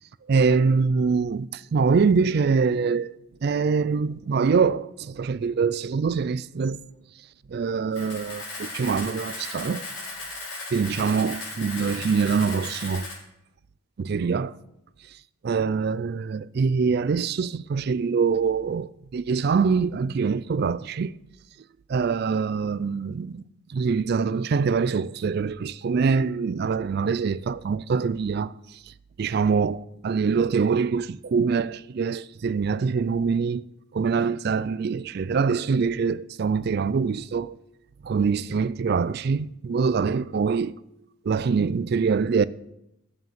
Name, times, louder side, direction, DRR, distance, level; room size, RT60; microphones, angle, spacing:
voice 1, 0.3-3.0 3.4-6.8 7.5-9.8 10.7-13.1 14.0-14.6 15.4-21.1 21.9-23.4 23.7-28.8 29.2-33.6 33.9-37.6 38.0-40.8 41.2-42.4, right 5 dB, 50° right, 0.3 m, -24 dB
Camera, 7.9-13.1, left 2 dB, 80° left, 4.9 m, -36 dB
8.2 x 7.6 x 7.4 m
head